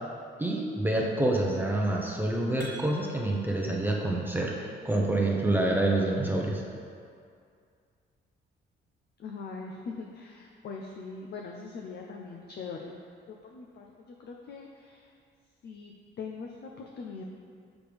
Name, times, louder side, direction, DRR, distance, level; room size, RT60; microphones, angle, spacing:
voice 1, 0.4-6.6, right 2 dB, 10° right, -2 dB, 0.8 m, -27 dB
sound 1, 2.6-3.6, right 1 dB, 15° left, 1.6 m, -47 dB
voice 2, 9.2-13.0 13.4-13.9 14.2-15.1 15.6-17.2, left 4 dB, 55° left, 0 dB, 0.6 m, -41 dB
6.7 x 6.0 x 3.4 m, 2.3 s
cardioid pair, 90°, 20 cm